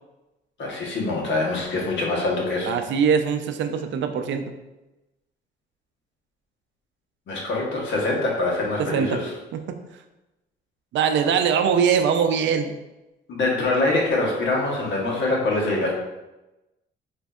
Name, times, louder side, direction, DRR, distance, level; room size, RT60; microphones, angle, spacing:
voice 1, 0.6-2.7 7.3-9.3 13.3-15.9, left 2 dB, 70° left, -2 dB, 1.1 m, -24 dB
voice 2, 2.7-4.5 8.8-9.2 9.5-9.6 10.9-12.8, right 7 dB, 70° right, 7 dB, 0.4 m, -22 dB
4.9 x 2.6 x 2.3 m, 1.0 s
cardioid pair, 90°, 20 cm